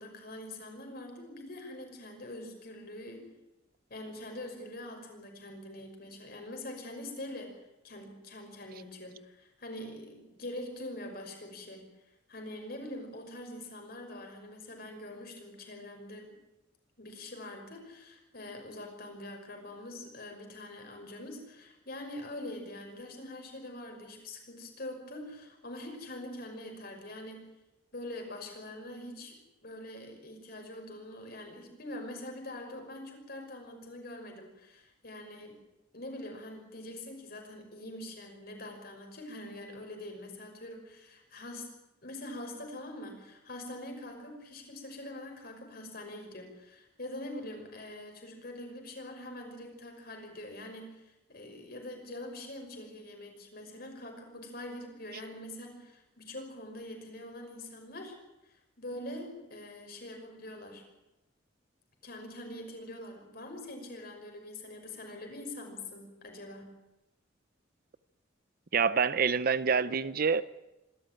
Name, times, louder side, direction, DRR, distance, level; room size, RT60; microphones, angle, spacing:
voice 1, 0.0-3.3 3.9-7.5 7.8-11.9 12.3-16.3 17.0-27.4 27.9-35.6 35.9-41.7 42.0-58.1 58.4-60.8 62.0-66.7, left 1 dB, 55° left, 5.8 m, -44 dB
voice 2, 68.7-70.4, right 5 dB, 50° right, 0.7 m, -26 dB
26.0 x 13.0 x 9.1 m
head